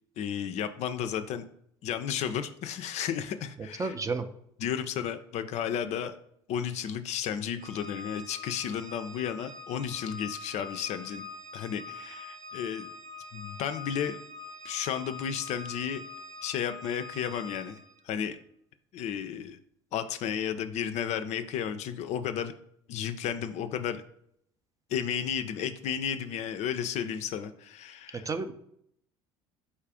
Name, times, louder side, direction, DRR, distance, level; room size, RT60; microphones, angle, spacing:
voice 1, 0.2-1.5 1.8-4.0 4.6-6.2 6.5-11.2 11.5-12.9 13.3-14.2 14.6-16.0 16.4-17.8 18.0-18.4 18.9-19.6 19.9-22.5 22.9-24.0 24.9-28.3, left 8 dB, 50° left, 10 dB, 0.4 m, -33 dB
voice 2, 3.8-4.2 28.3-28.5, right 4 dB, 25° right, 8 dB, 0.4 m, -30 dB
Organ, 7.6-18.0, left 3 dB, 55° right, 0.9 m, -44 dB
4.2 x 2.4 x 4.7 m, 0.69 s
hypercardioid pair, 65°, 14 cm